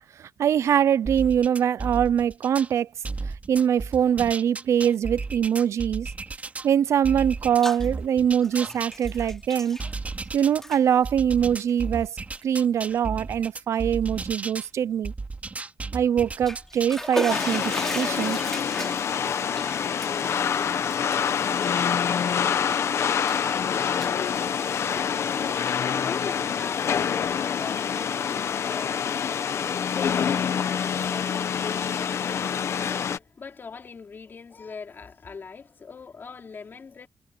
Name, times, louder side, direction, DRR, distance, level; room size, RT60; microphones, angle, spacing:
voice 1, 0.2-2.9 3.5-6.1 6.6-9.8 10.3-12.1 12.4-15.1 15.9-18.4, right 9 dB, 80° right, 0.5 m, -23 dB
sound 1, 1.1-2.7 3.0-6.7 7.0-10.6 11.0-14.7 15.0-17.0, right 3 dB, 30° right, 3.2 m, -34 dB
Bathtub (filling or washing), 7.3-7.9 8.2-10.3 10.5-10.8 11.6-11.7 12.4-12.5 12.9-13.0 16.2-22.3 22.7-23.5 23.8-25.1, left 1 dB, 10° left, 4.0 m, -36 dB
sound 2, 17.3-33.2, left 7 dB, 70° left, 1.1 m, -26 dB
voice 2, 24.0-37.1, left 5 dB, 45° left, 3.6 m, -42 dB
wide cardioid pair, 120°, 5 cm